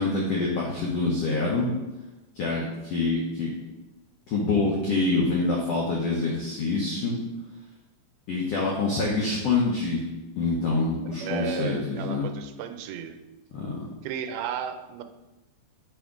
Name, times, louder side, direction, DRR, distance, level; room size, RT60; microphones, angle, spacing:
voice 1, 0.0-1.7 2.3-3.5 4.3-7.2 8.3-10.0 10.3-12.3 13.5-13.9, left 3 dB, 80° left, -3 dB, 1.4 m, -26 dB
voice 2, 11.1-13.2 14.0-15.0, right 8 dB, 85° right, 8 dB, 2.4 m, -34 dB
8.4 x 3.5 x 5.0 m, 1.0 s
omnidirectional pair, 4.2 m